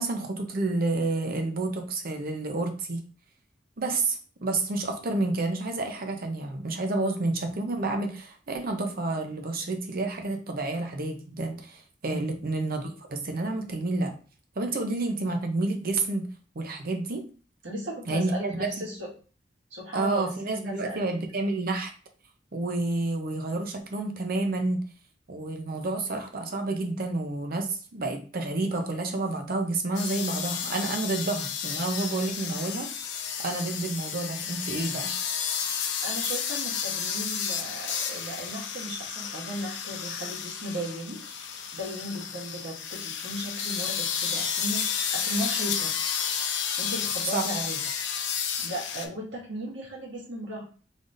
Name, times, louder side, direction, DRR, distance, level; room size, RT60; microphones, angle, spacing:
voice 1, 0.0-3.0 3.8-14.1 14.6-16.3 16.5-17.2 18.1-18.9 19.9-21.9 22.5-24.8 25.3-32.9 33.4-35.1 47.3-47.4, right 2 dB, 55° right, 5 dB, 0.7 m, -29 dB
voice 2, 17.6-19.0 19.7-20.3 20.6-21.0 35.5-35.7 36.0-41.2 41.7-44.8 45.1-45.9 46.8-47.8 48.6-50.6, right 1 dB, 90° right, -4 dB, 1.7 m, -36 dB
sound 1, 29.9-49.1, left 7 dB, 75° left, 0.6 m, -31 dB
3.9 x 3.4 x 2.5 m, 0.39 s
head